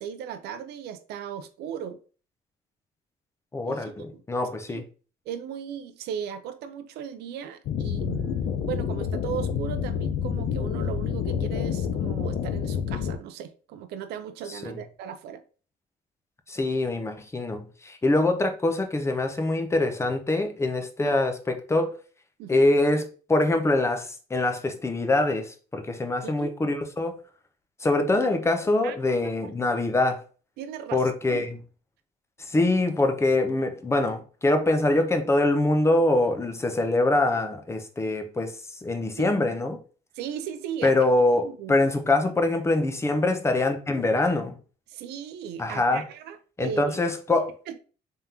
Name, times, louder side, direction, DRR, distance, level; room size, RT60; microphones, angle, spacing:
voice 1, 0.0-2.0 3.6-4.2 4.7-4.8 5.3-15.4 21.0-21.2 22.4-22.6 26.2-26.5 28.8-29.5 30.6-31.5 39.2-39.3 40.1-41.0 41.4-41.9 44.9-47.0 47.7-47.8, right 8 dB, 75° right, 0.5 m, -37 dB
voice 2, 3.5-4.8 14.5-14.8 16.5-21.9 22.5-23.0 23.3-27.2 27.8-30.2 30.9-31.6 32.5-38.5 38.8-39.8 40.8-44.6 45.6-46.0 46.6-47.5, left 2 dB, 15° left, 0.7 m, -24 dB
sound 1, 7.6-13.2, left 8 dB, 60° left, 0.5 m, -28 dB
3.6 x 3.5 x 2.8 m
cardioid pair, 110°, 17 cm